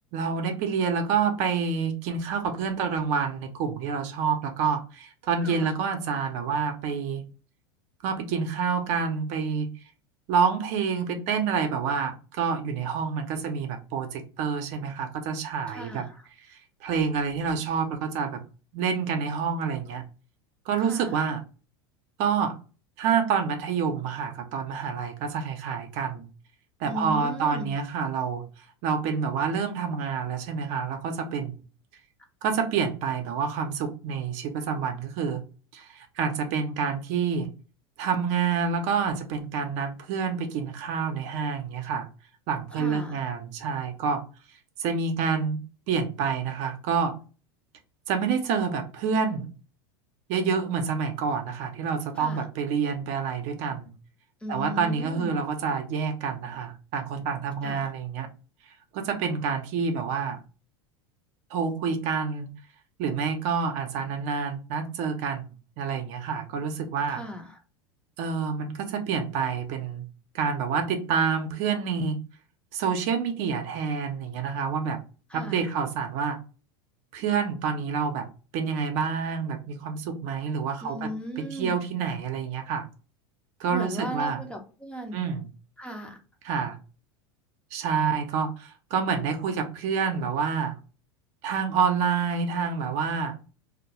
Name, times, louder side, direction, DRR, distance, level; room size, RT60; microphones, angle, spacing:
voice 1, 0.1-7.2 8.0-9.7 10.3-16.1 16.5-18.4 18.7-20.0 20.7-21.4 22.2-22.6 23.0-26.3 26.8-28.4 28.8-31.5 32.4-35.4 35.7-37.5 38.0-42.1 42.5-44.2 44.8-45.6 45.9-47.1 48.1-49.5 50.3-53.9 54.5-58.3 58.9-60.4 61.5-62.5 63.0-65.4 65.8-67.2 68.2-70.1 70.3-72.2 72.7-75.0 75.3-76.4 77.1-78.3 78.5-81.1 81.4-82.9 83.6-84.4 85.1-85.5 86.4-86.8 87.7-90.8 91.4-93.4, right 6 dB, 55° right, 6 dB, 0.6 m, -28 dB
voice 2, 5.4-5.7 15.7-16.2 20.8-21.2 26.9-27.7 42.7-43.2 52.2-52.5 54.4-55.3 57.6-57.9 67.1-67.6 75.3-75.6 80.8-81.7 83.7-85.2 85.8-86.2, equal, 10° left, 3 dB, 0.5 m, -36 dB
2.2 x 2.1 x 2.8 m, 0.35 s
hypercardioid pair, 105°, 14 cm